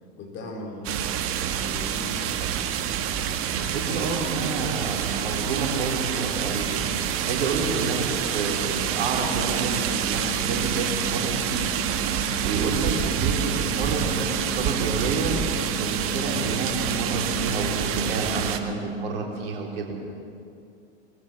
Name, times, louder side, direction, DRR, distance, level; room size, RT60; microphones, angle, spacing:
voice 1, 0.2-2.5, left 2 dB, 35° left, 0 dB, 4.7 m, -38 dB
sound 1, 0.8-18.6, right 9 dB, 40° right, 1.6 m, -27 dB
sound 2, 3.2-8.3, left 3 dB, 65° left, 4.8 m, -47 dB
voice 2, 3.5-6.8 7.2-11.7 12.4-19.9, right 4 dB, 60° right, 0 dB, 4.3 m, -29 dB
sound 3, 8.9-18.9, left 1 dB, 10° right, 5.3 m, -36 dB
22.5 x 16.0 x 7.7 m, 2.5 s
figure-of-eight pair, 85°, 32 cm